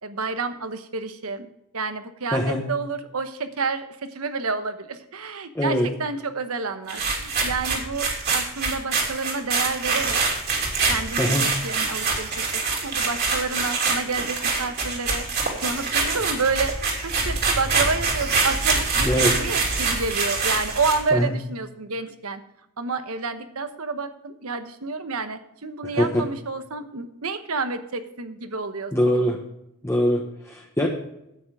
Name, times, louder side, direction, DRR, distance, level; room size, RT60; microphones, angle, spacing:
voice 1, 0.0-1.5 1.7-10.2 10.9-15.3 15.6-22.4 22.8-28.9, right 4 dB, 85° right, 10 dB, 1.1 m, -29 dB
voice 2, 2.3-2.6 5.5-5.9 11.2-11.5 19.0-19.3 21.1-21.3 25.9-26.2 28.9-29.4 29.8-30.9, equal, 15° left, -1 dB, 1.1 m, -22 dB
sound 1, 6.9-21.1, right 4 dB, 50° right, 2.9 m, -25 dB
9.5 x 9.0 x 4.8 m, 0.83 s
head